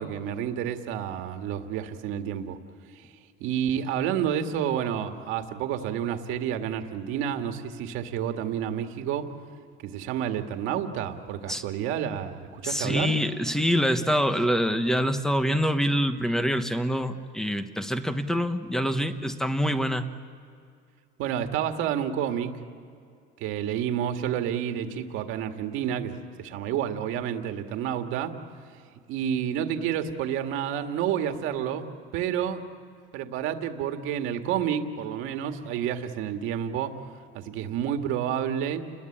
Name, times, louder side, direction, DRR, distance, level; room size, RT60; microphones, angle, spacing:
voice 1, 0.0-2.6 3.0-3.1 3.4-9.3 9.8-13.1 21.2-22.5 23.4-28.4 29.1-31.9 32.1-32.6 33.1-37.0 37.3-38.9, right 9 dB, 75° right, 6 dB, 2.0 m, -29 dB
voice 2, 12.6-20.1, equal, ahead, 9 dB, 1.1 m, -25 dB
30.0 x 21.5 x 8.8 m, 2.4 s
cardioid pair, 160°, 21 cm